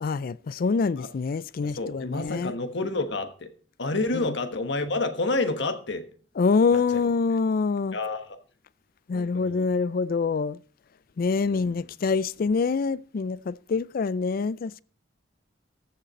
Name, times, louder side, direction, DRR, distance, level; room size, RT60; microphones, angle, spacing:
voice 1, 0.0-2.5 4.2-4.3 6.4-8.0 9.1-10.6 11.2-14.8, left 4 dB, 50° left, 0.4 m, -25 dB
voice 2, 1.6-3.5 3.8-6.0 6.7-6.8 7.9-8.3 9.1-9.7 11.5-11.9, left 2 dB, 65° left, 1.3 m, -29 dB
14.5 x 6.6 x 4.2 m
head